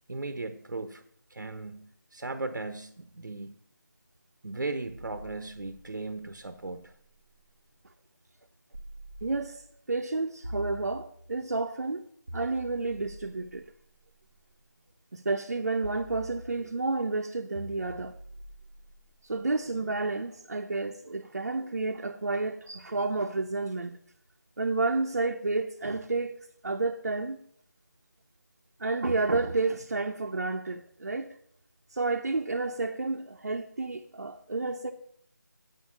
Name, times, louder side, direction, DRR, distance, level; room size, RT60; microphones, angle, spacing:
voice 1, 0.1-1.0 1.3-3.6 4.4-6.9, right 3 dB, 80° right, 1.0 m, -37 dB
sound 1, 4.8-7.6 8.7-9.8 10.4-11.5 12.3-14.5 15.8-16.9 17.5-19.7, equal, 20° right, 0.5 m, -46 dB
voice 2, 9.2-12.1 12.3-13.7 15.1-18.1 19.2-24.0 24.6-26.3 26.6-27.4 28.8-31.3 31.9-34.9, right 3 dB, 55° right, 0.8 m, -30 dB
8.4 x 6.6 x 7.3 m
figure-of-eight pair, 175°, 11 cm